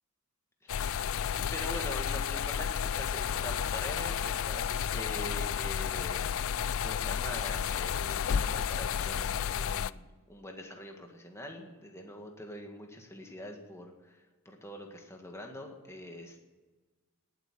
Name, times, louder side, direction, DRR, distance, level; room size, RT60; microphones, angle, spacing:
sound 1, 0.7-9.9, left 8 dB, 60° left, 0.4 m, -32 dB
voice 1, 1.3-6.2 6.8-16.4, left 1 dB, 10° left, 2 dB, 1.9 m, -44 dB
19.0 x 8.2 x 7.5 m, 1.3 s
head